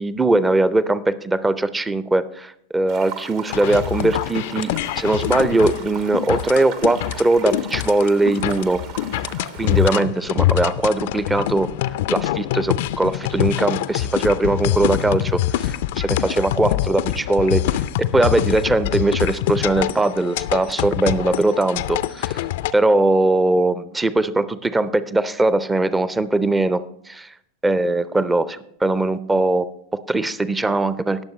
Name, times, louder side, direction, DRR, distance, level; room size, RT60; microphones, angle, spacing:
voice 1, 0.0-8.8 9.6-11.7 12.1-17.8 18.1-22.4 22.7-27.3 27.6-31.2, right 2 dB, 10° right, 16 dB, 0.5 m, -20 dB
sound 1, 2.9-10.0, right 7 dB, 45° right, 0.9 m, -38 dB
sound 2, 3.5-22.7, left 14 dB, 50° left, 0.4 m, -24 dB
20.0 x 7.1 x 3.1 m, 0.71 s
figure-of-eight pair, 90°, 0 cm